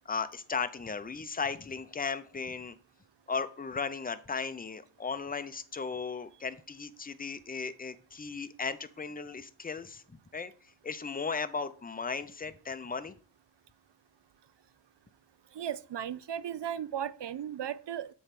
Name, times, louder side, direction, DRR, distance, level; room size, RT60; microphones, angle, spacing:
voice 1, 0.1-2.8 3.3-13.1, left 5 dB, 20° left, 0.6 m, -36 dB
voice 2, 15.6-18.1, right 9 dB, 60° right, 0.5 m, -36 dB
8.0 x 3.2 x 5.9 m
cardioid pair, 40°, 47 cm